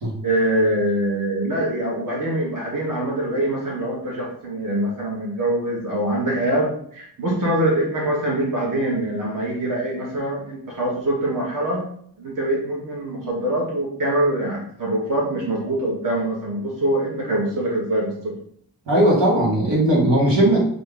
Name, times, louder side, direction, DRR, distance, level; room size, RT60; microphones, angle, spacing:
voice 1, 0.2-11.9 12.2-18.3, right 1 dB, 50° right, -3 dB, 1.2 m, -24 dB
voice 2, 18.9-20.6, right 1 dB, 85° right, -4 dB, 1.5 m, -17 dB
3.5 x 2.7 x 3.4 m, 0.63 s
wide cardioid pair, 120°, 42 cm